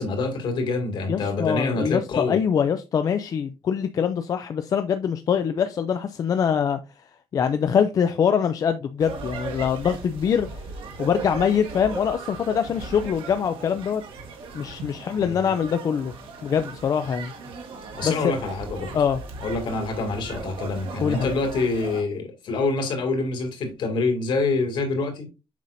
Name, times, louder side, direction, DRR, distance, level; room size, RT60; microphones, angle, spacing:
voice 1, 0.0-2.4 15.2-15.5 18.0-18.9 19.4-25.3, left 3 dB, 65° left, 2.3 m, -26 dB
voice 2, 1.1-6.8 7.3-10.5 11.0-14.0 14.5-16.1 16.4-17.3 18.0-18.4 18.9-19.2 21.0-21.3, left 7 dB, 40° left, 0.4 m, -23 dB
sound 1, 9.0-22.0, right 4 dB, 75° right, 1.8 m, -38 dB
7.4 x 5.5 x 2.6 m
cardioid pair, 170°, 9 cm